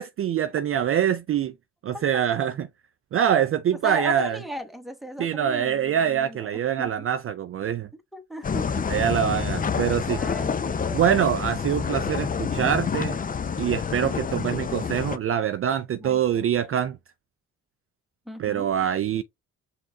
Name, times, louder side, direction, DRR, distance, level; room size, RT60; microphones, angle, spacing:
voice 1, 0.0-1.5 1.8-2.7 3.1-4.4 5.2-7.9 8.9-10.2 10.9-13.2 13.6-17.0 18.4-19.2, right 9 dB, 45° right, 0.4 m, -24 dB
voice 2, 3.8-6.9 8.1-8.9 10.1-11.2 16.0-16.5 18.3-18.7, equal, ahead, 1.0 m, -37 dB
sound 1, 8.4-15.2, left 6 dB, 25° left, 0.5 m, -28 dB
5.1 x 2.4 x 3.7 m
supercardioid pair, 65°, 31 cm